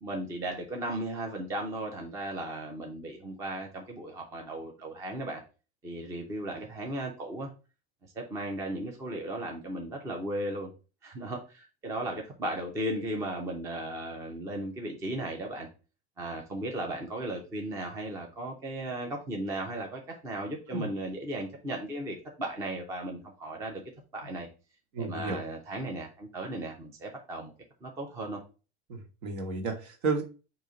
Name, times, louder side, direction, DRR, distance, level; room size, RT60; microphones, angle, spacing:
voice 1, 0.0-5.4 5.8-7.5 8.2-10.7 11.0-15.7 16.2-23.8 24.1-24.5 25.0-27.5 27.8-28.4, right 1 dB, 10° right, 2 dB, 0.4 m, -36 dB
voice 2, 24.9-25.4 28.9-30.2, right 3 dB, 70° right, 4 dB, 1.4 m, -32 dB
3.9 x 2.8 x 4.8 m, 0.34 s
supercardioid pair, 160°, 34 cm